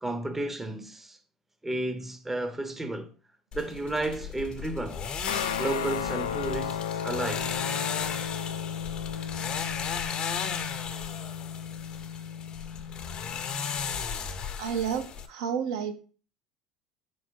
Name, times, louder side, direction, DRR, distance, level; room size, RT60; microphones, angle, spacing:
voice 1, 0.0-1.2 1.6-3.1 3.5-5.0 5.6-7.5, right 2 dB, 10° right, 0.6 m, -32 dB
sound 1, 3.5-15.3, left 7 dB, 45° left, 0.6 m, -35 dB
Guitar, 5.3-14.0, left 8 dB, 85° left, 0.3 m, -35 dB
voice 2, 14.6-15.9, right 7 dB, 75° right, 0.6 m, -30 dB
4.5 x 2.1 x 4.5 m
hypercardioid pair, 75°, 2 cm